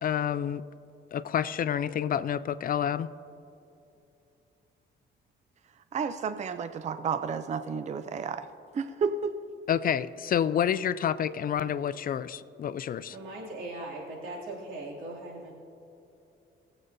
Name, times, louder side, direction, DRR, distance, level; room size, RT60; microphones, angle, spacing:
voice 1, 0.0-0.6 1.1-3.1 9.7-13.2, left 9 dB, 45° left, 16 dB, 0.4 m, -28 dB
voice 2, 5.9-8.5 8.7-9.3, right 5 dB, 35° right, 10 dB, 0.4 m, -31 dB
voice 3, 13.1-15.5, right 2 dB, 85° right, -4 dB, 2.7 m, -39 dB
20.0 x 8.0 x 2.7 m, 2.8 s
cardioid pair, 90°, 20 cm